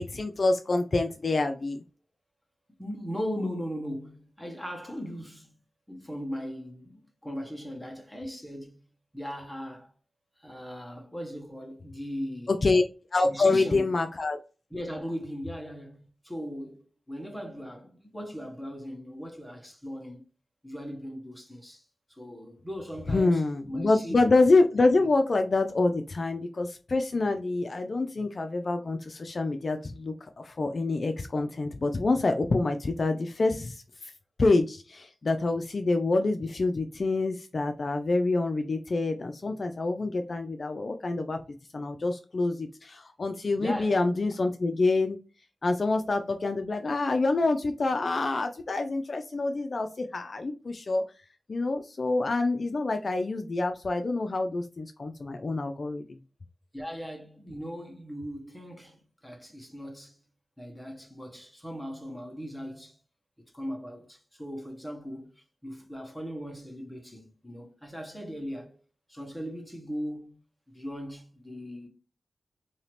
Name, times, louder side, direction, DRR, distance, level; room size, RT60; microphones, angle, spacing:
voice 1, 0.0-1.8 12.5-12.8 13.1-14.4 23.1-34.1 34.4-41.4 41.7-45.2 45.6-51.0 51.5-56.2, left 3 dB, 55° left, 0.4 m, -26 dB
voice 2, 2.8-5.5 5.9-8.8 9.1-9.9 10.4-12.7 13.2-13.9 14.7-20.2 20.6-24.1 25.0-25.1 43.6-44.0 56.7-60.2 60.6-63.0 63.5-68.8 69.1-70.4 70.7-71.9, equal, 5° left, 1.2 m, -38 dB
2.8 x 2.8 x 3.2 m
cardioid pair, 60°, 0 cm